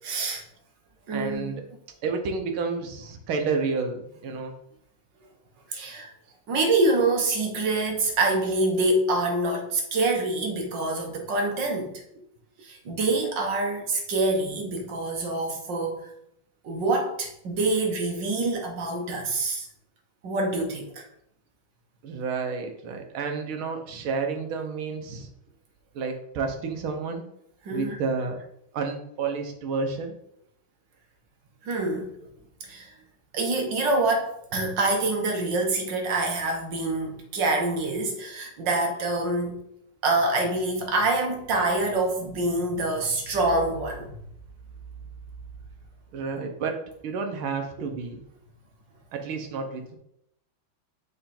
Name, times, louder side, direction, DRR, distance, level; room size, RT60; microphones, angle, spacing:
voice 1, 0.0-0.4 1.1-1.6 5.7-6.1 6.5-12.0 12.6-16.1 16.6-19.7 20.2-21.1 27.6-28.0 31.6-32.1 32.6-32.9 33.3-39.5 40.0-44.1, right 2 dB, 65° right, 1.8 m, -26 dB
voice 2, 1.1-1.6 2.0-4.5 12.2-12.3 22.0-25.3 25.9-27.3 27.7-28.4 28.7-30.2 46.1-48.2 49.1-50.0, right 4 dB, 85° right, 1.8 m, -30 dB
7.8 x 4.5 x 4.3 m
omnidirectional pair, 2.2 m